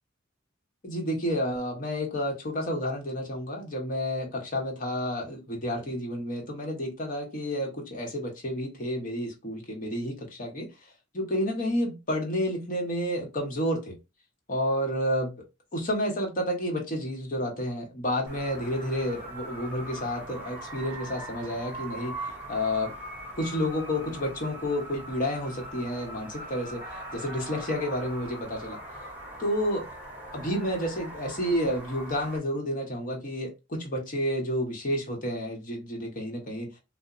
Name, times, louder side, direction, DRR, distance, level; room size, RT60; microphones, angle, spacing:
voice 1, 0.8-10.7 11.1-14.0 14.5-15.4 15.7-22.9 23.4-28.8 29.4-29.9 30.3-36.7, equal, 40° left, 0.9 m, -30 dB
sound 1, 18.3-32.4, right 1 dB, 10° right, 0.8 m, -41 dB
2.8 x 2.0 x 2.4 m
head